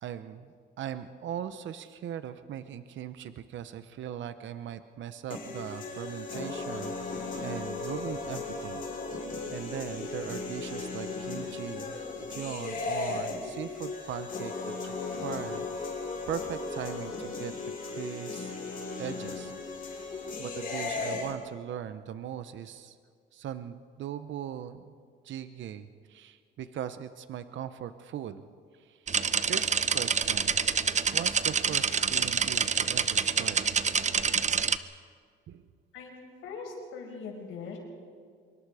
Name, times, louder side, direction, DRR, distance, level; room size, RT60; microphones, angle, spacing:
voice 1, 0.0-16.0 16.3-17.5 17.9-18.5 19.0-19.5 19.9-23.0 23.3-24.9 25.2-28.4 28.7-29.1 29.5-30.6 31.1-33.7 35.5-35.6, right 10 dB, 70° right, 11 dB, 0.9 m, -40 dB
sound 1, 5.3-21.3, left 3 dB, 45° left, 5.2 m, -36 dB
sound 2, 29.1-34.8, right 6 dB, 35° right, 0.9 m, -27 dB
voice 2, 36.4-37.8, left 5 dB, 85° left, 1 dB, 5.6 m, -41 dB
25.5 x 23.5 x 5.0 m, 2.1 s
cardioid pair, 90°, 20 cm